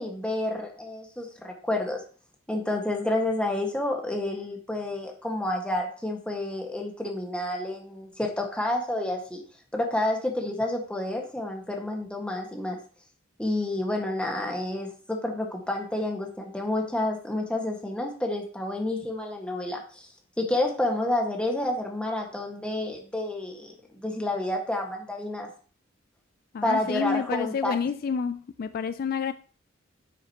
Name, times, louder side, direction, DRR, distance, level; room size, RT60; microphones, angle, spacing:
voice 1, 0.0-2.0 2.5-9.4 9.7-12.8 13.4-20.1 20.4-25.5 26.6-27.8, left 1 dB, 5° left, 1.5 m, -29 dB
voice 2, 26.5-29.3, left 6 dB, 50° left, 0.3 m, -29 dB
9.9 x 6.4 x 2.9 m
head